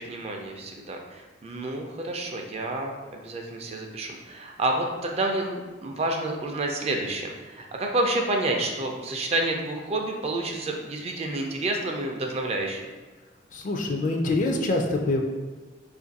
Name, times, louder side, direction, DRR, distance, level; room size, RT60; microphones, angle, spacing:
voice 1, 0.0-12.8, right 2 dB, 35° right, 2 dB, 0.4 m, -29 dB
voice 2, 13.5-15.2, left 2 dB, 45° left, 2 dB, 0.4 m, -25 dB
2.6 x 2.5 x 3.9 m, 1.3 s
head